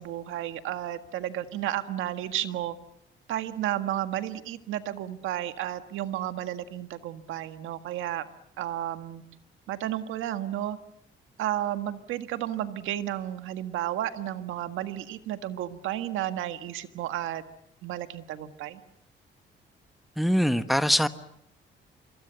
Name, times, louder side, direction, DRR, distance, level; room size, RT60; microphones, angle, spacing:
voice 1, 0.0-2.8 3.3-8.2 8.6-9.2 9.7-10.8 11.4-17.4 17.8-18.8, right 12 dB, 90° right, 1.7 m, -32 dB
voice 2, 20.2-21.1, equal, ahead, 1.4 m, -23 dB
26.5 x 24.0 x 8.1 m
cardioid pair, 90°, 20 cm